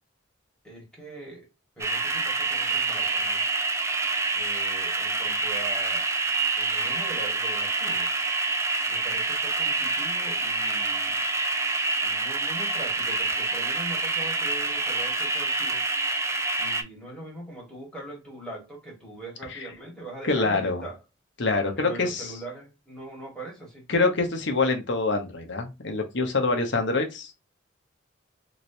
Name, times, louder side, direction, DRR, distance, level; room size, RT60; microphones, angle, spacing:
voice 1, 0.6-1.5 1.7-3.4 4.3-6.1 6.5-8.1 8.9-11.2 12.0-15.9 16.6-21.0 21.8-23.9, right 2 dB, 5° left, 1.7 m, -41 dB
sound 1, 1.8-16.8, right 3 dB, 15° right, 0.5 m, -27 dB
voice 2, 20.3-20.8 21.4-22.3 23.9-27.4, left 3 dB, 65° left, 0.9 m, -25 dB
3.1 x 3.0 x 2.7 m
head